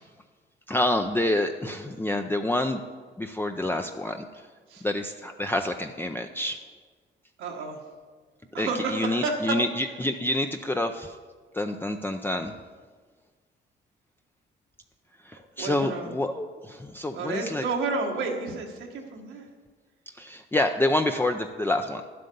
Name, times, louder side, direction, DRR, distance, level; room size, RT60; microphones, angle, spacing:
voice 1, 0.7-2.8 3.2-4.5 4.8-6.6 8.6-11.2 11.5-12.5 15.2-17.7 20.1-22.0, left 1 dB, 10° left, 5 dB, 0.5 m, -28 dB
voice 2, 7.4-7.8 8.5-9.6 15.6-16.1 17.1-19.5, right 3 dB, 90° right, 1 dB, 1.6 m, -30 dB
10.5 x 7.7 x 5.3 m, 1.5 s
cardioid pair, 90°, 20 cm